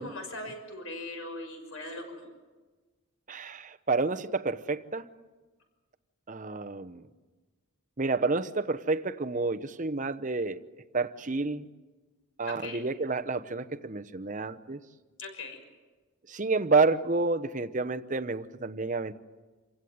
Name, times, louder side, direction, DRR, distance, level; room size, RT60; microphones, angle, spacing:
voice 1, 0.0-2.3 12.5-12.8 15.2-15.6, left 2 dB, 70° left, 5 dB, 6.0 m, -40 dB
voice 2, 3.3-5.1 6.3-7.0 8.0-10.6 10.9-11.7 12.4-14.8 16.3-19.1, right 3 dB, 35° right, 10 dB, 0.9 m, -29 dB
27.5 x 16.5 x 9.5 m, 1.3 s
head